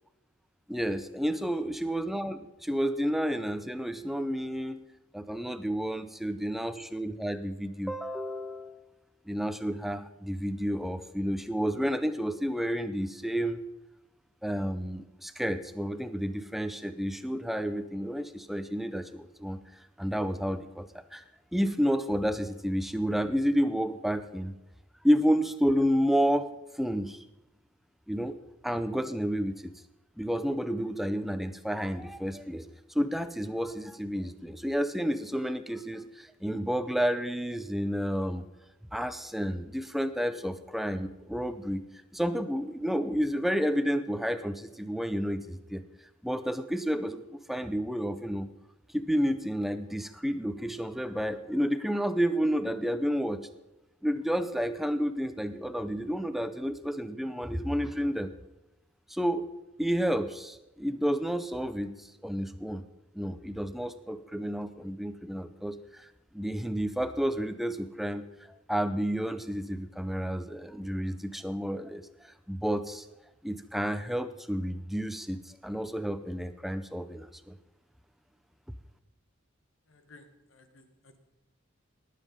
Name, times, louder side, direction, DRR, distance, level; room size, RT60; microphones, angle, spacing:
voice 1, 0.7-4.9 5.1-8.8 9.3-13.6 14.4-19.6 20.0-21.2 21.5-24.5 25.0-27.2 28.1-28.4 28.6-29.7 30.2-32.7 32.9-38.4 38.9-41.8 42.1-45.8 46.2-48.5 48.9-53.5 54.0-58.3 59.1-59.5 59.8-62.8 63.1-66.1 66.3-73.1 73.4-77.6, equal, ahead, 10 dB, 0.5 m, -30 dB
voice 2, 1.3-1.6 28.2-28.3 79.9-81.2, left 3 dB, 65° left, 7 dB, 1.5 m, -56 dB
19.0 x 7.5 x 5.3 m, 0.95 s
head